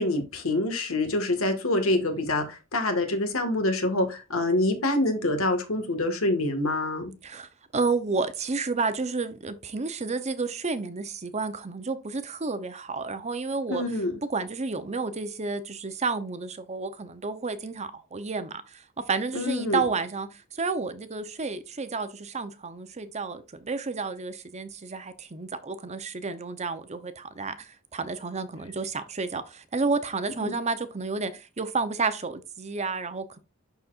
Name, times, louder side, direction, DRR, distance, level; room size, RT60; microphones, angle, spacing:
voice 1, 0.0-7.1 13.7-14.2 19.3-19.8 30.4-30.6, left 2 dB, 75° left, 1.7 m, -26 dB
voice 2, 7.2-13.8 14.3-33.4, right 4 dB, 30° right, 0.7 m, -31 dB
11.5 x 4.2 x 2.5 m
head